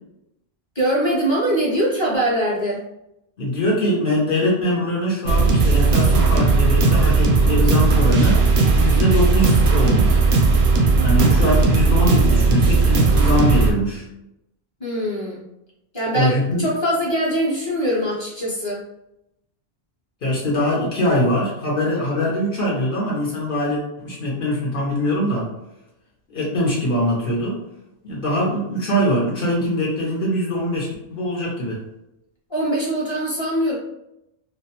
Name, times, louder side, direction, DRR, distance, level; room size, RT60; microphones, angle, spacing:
voice 1, 0.7-2.8 14.8-15.4 15.9-18.8 32.5-33.7, right 1 dB, 30° left, -6 dB, 0.7 m, -22 dB
voice 2, 3.4-10.3 11.0-14.0 16.1-16.7 20.2-25.5 26.3-27.6 28.0-31.8, equal, 60° left, -5 dB, 0.9 m, -22 dB
sound 1, 5.3-13.7, right 3 dB, 90° right, 0.8 m, -16 dB
2.4 x 2.1 x 2.8 m, 0.86 s
omnidirectional pair, 1.0 m